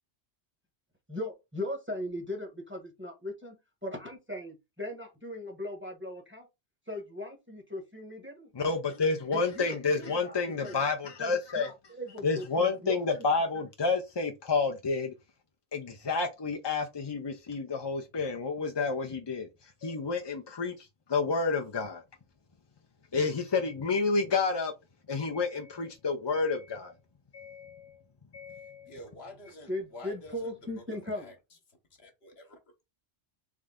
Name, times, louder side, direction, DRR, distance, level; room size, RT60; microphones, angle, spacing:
voice 1, 1.1-6.5 6.9-8.5 9.3-10.8 11.2-13.1 13.5-13.6 29.7-31.3, left 1 dB, 10° right, 1.1 m, -39 dB
voice 2, 8.6-11.7 12.2-15.1 15.7-19.5 19.8-22.0 23.1-24.7 25.1-26.9 27.3-27.9 28.3-28.9, left 4 dB, 35° left, 0.4 m, -30 dB
voice 3, 28.9-31.3 32.0-32.8, left 1 dB, 65° left, 1.4 m, -48 dB
3.7 x 3.3 x 3.6 m
omnidirectional pair, 1.2 m